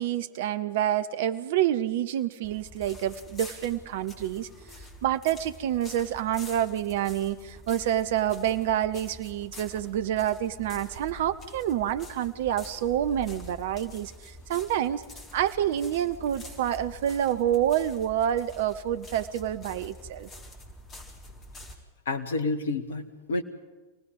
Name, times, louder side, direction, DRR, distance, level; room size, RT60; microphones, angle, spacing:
voice 1, 0.0-4.5 4.8-15.0 15.3-20.3, right 11 dB, 55° right, 13 dB, 0.7 m, -28 dB
sound 1, 2.4-21.7, left 1 dB, 20° left, 4.1 m, -46 dB
voice 2, 22.1-23.4, left 3 dB, 65° left, 12 dB, 1.5 m, -29 dB
27.5 x 18.5 x 5.4 m, 1.2 s
figure-of-eight pair, 90°, 0 cm